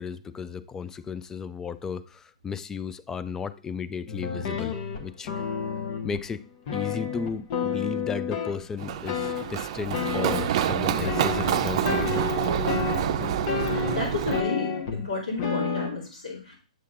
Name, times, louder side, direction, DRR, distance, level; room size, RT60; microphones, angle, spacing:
voice 1, 0.0-5.5 6.0-6.4 6.7-12.2, left 6 dB, 15° left, 0.4 m, -34 dB
sound 1, 4.1-6.3 6.7-9.5 9.9-10.7 11.0-15.0 15.4-15.9, left 6 dB, 40° left, 1.0 m, -30 dB
Run, 8.8-14.4, right 9 dB, 45° right, 0.6 m, -27 dB
voice 2, 13.6-16.6, left 3 dB, 85° left, 2.8 m, -32 dB
7.8 x 6.6 x 2.5 m
hypercardioid pair, 125°, 4 cm